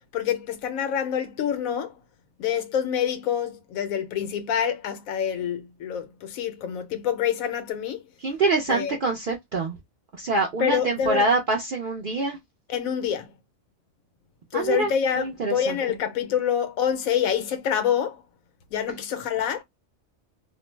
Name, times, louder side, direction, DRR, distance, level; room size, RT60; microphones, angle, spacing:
voice 1, 0.1-1.9 2.4-8.0 8.7-9.0 10.6-11.2 12.7-13.3 14.5-18.2 18.7-19.6, left 8 dB, 85° left, 1.0 m, -26 dB
voice 2, 8.2-9.8 10.1-12.4 14.5-15.8, right 3 dB, 65° right, 0.5 m, -25 dB
2.5 x 2.0 x 3.1 m
omnidirectional pair, 1.4 m